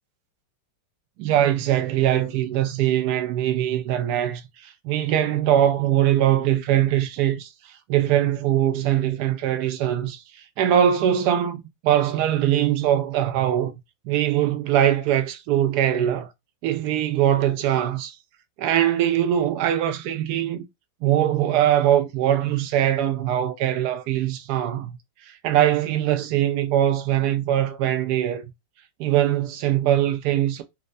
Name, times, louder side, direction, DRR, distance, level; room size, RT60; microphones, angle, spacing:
voice 1, 1.2-7.5 7.9-10.2 10.6-13.7 14.0-16.3 16.6-18.2 18.6-20.6 21.0-25.0 25.4-28.5 29.0-30.6, right 11 dB, 70° right, 1.0 m, -22 dB
4.2 x 2.1 x 2.5 m
omnidirectional pair, 2.0 m